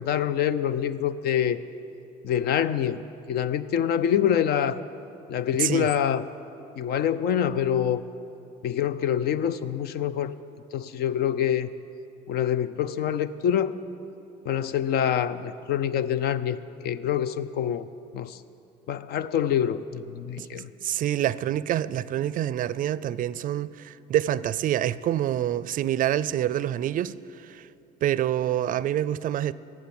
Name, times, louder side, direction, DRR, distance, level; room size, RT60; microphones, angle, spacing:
voice 1, 0.0-1.6 2.2-3.0 3.3-4.8 5.3-6.2 6.8-8.0 8.6-10.3 10.7-11.7 12.3-13.8 14.5-16.6 16.8-17.9 18.1-18.4 18.9-20.7, left 9 dB, 70° left, 0.6 m, -25 dB
voice 2, 5.6-5.9 20.4-27.1 27.4-27.7 28.0-29.5, right 11 dB, 55° right, 0.4 m, -27 dB
15.5 x 7.5 x 9.5 m
cardioid pair, 110°, 17 cm